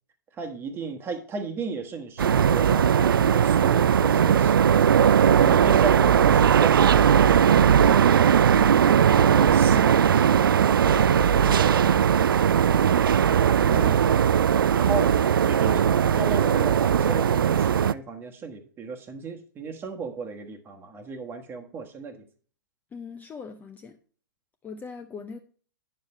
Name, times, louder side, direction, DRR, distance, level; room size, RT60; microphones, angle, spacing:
voice 1, 0.4-4.7 5.3-11.9 13.7-14.0 14.5-15.2 15.5-22.3, right 4 dB, 20° right, 1.3 m, -35 dB
sound 1, 2.2-17.9, right 8 dB, 80° right, 0.4 m, -19 dB
voice 2, 13.6-14.0 22.9-24.0 24.6-25.4, left 4 dB, 15° left, 0.6 m, -40 dB
9.6 x 6.8 x 3.1 m
hypercardioid pair, 125°, 12 cm